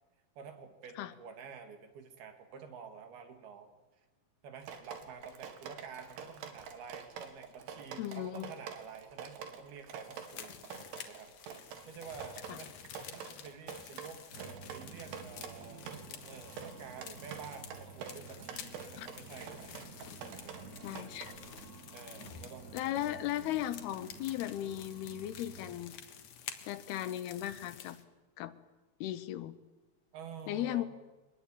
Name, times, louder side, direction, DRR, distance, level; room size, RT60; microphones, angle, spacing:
voice 1, 0.4-3.7 4.4-10.6 11.0-11.3 11.6-20.0 20.4-20.7 21.9-23.5 30.1-30.9, right 6 dB, 70° right, 6 dB, 4.1 m, -49 dB
Drip, 4.6-21.6, right 7 dB, 90° right, 4.1 m, -47 dB
voice 2, 8.0-8.5 12.5-12.6 19.0-19.1 20.8-21.3 22.7-25.9 26.6-28.0 28.4-28.5 29.0-29.6 30.5-30.9, left 13 dB, 80° left, 13 dB, 2.9 m, -36 dB
sound 1, 10.0-28.0, left 8 dB, 60° left, 2.5 m, -51 dB
sound 2, 14.3-25.8, right 4 dB, 40° right, 1.4 m, -52 dB
24.5 x 20.0 x 9.0 m, 1.2 s
omnidirectional pair, 4.7 m